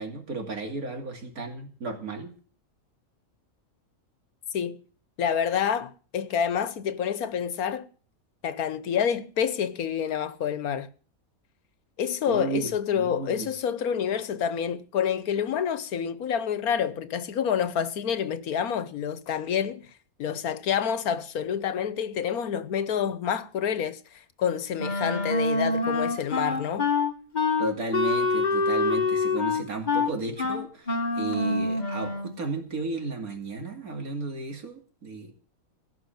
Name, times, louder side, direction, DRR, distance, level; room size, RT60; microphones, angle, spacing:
voice 1, 0.0-2.3 12.3-13.5 27.6-35.3, right 3 dB, 80° right, 3.0 m, -34 dB
voice 2, 5.2-7.9 8.4-10.9 12.0-19.9 20.2-26.9, left 8 dB, 85° left, 1.5 m, -28 dB
Wind instrument woodwind instrument, 24.8-32.4, left 3 dB, 30° left, 1.9 m, -26 dB
17.0 x 6.0 x 9.2 m
omnidirectional pair, 1.5 m